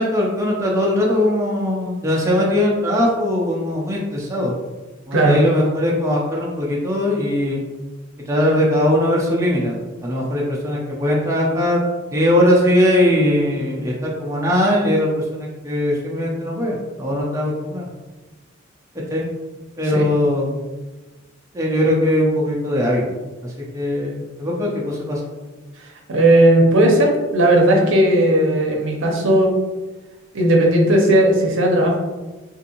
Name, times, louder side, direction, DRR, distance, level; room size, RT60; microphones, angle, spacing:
voice 1, 0.0-4.5 5.1-7.6 8.3-9.8 10.0-11.8 12.1-17.9 19.1-19.2 19.8-20.6 21.5-23.0 23.4-25.2, left 1 dB, 15° right, -4 dB, 0.5 m, -20 dB
voice 2, 26.1-29.5 30.3-32.0, right 1 dB, 65° right, 0 dB, 0.7 m, -15 dB
3.6 x 2.6 x 2.8 m, 1.2 s
head